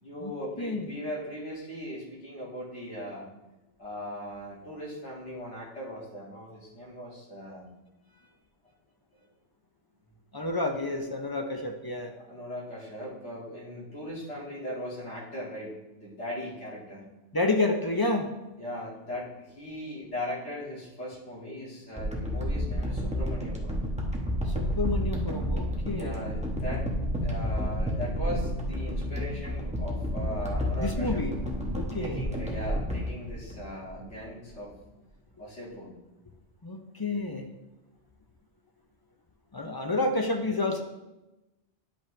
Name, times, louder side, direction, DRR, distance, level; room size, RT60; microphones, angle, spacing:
voice 1, 0.0-3.2 3.8-7.7 12.2-17.0 18.6-23.9 25.9-26.9 27.2-31.2 32.0-34.7 35.4-35.9, equal, 65° left, -7 dB, 2.4 m, -39 dB
voice 2, 10.3-12.1 17.3-18.3 24.5-26.2 30.8-31.4 31.7-32.2 36.6-37.5 39.5-40.8, left 2 dB, 35° left, 3 dB, 0.4 m, -29 dB
sound 1, 22.0-34.2 34.7-34.8, equal, 5° right, 0.9 m, -31 dB
10.0 x 5.3 x 3.2 m, 1.0 s
omnidirectional pair, 1.2 m